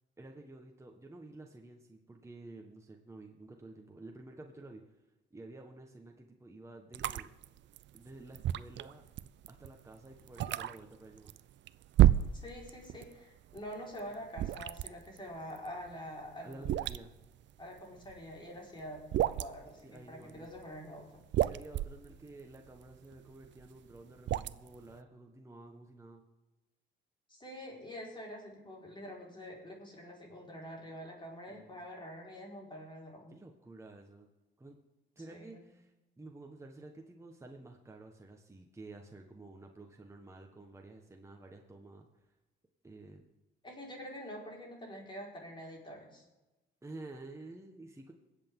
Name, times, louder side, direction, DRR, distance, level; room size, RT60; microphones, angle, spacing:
voice 1, 0.2-4.8 5.3-7.3 7.9-9.0 9.5-11.3 16.4-17.1 19.8-20.5 21.4-26.2 31.5-31.8 33.3-34.3 34.6-34.8 35.1-35.9 36.2-42.1 42.8-43.2 46.8-48.1, right 2 dB, 15° right, 2 dB, 1.5 m, -51 dB
sound 1, 6.9-13.1 13.4-18.4 18.8-19.7 20.3-20.8 21.1-24.9, right 13 dB, 65° right, 0.5 m, -31 dB
voice 2, 12.3-16.7 17.6-21.2 27.3-33.4 35.3-35.7 43.6-46.2, equal, 25° left, -1 dB, 4.9 m, -46 dB
22.0 x 8.3 x 3.8 m, 1.1 s
cardioid pair, 90°, 20 cm